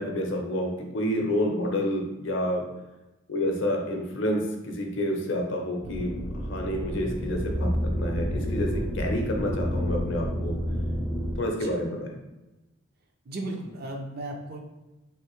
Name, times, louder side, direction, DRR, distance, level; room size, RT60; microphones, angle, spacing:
voice 1, 0.0-2.6 3.3-10.6 11.4-12.1, equal, 60° left, 1 dB, 0.6 m, -29 dB
sound 1, 5.8-11.4, equal, 5° left, 0.4 m, -29 dB
voice 2, 13.3-14.6, right 1 dB, 45° right, 2 dB, 0.5 m, -35 dB
3.3 x 2.5 x 3.0 m, 1.0 s
head